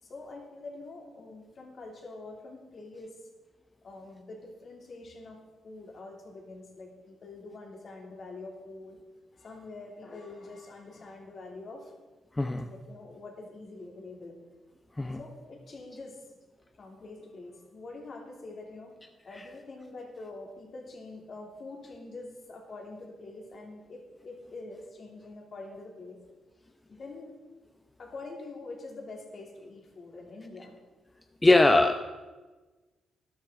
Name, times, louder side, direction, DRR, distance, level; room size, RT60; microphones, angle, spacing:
voice 1, 0.0-3.2 3.8-9.0 9.3-11.9 12.6-14.4 15.2-16.4 16.8-19.0 19.2-26.2 26.9-27.3 28.0-30.7, left 2 dB, 55° left, 0 dB, 2.8 m, -45 dB
voice 2, 12.4-12.7 15.0-15.2 31.4-32.0, left 2 dB, 20° left, 6 dB, 0.7 m, -21 dB
13.0 x 11.5 x 3.8 m, 1.3 s
supercardioid pair, 50°, 0 cm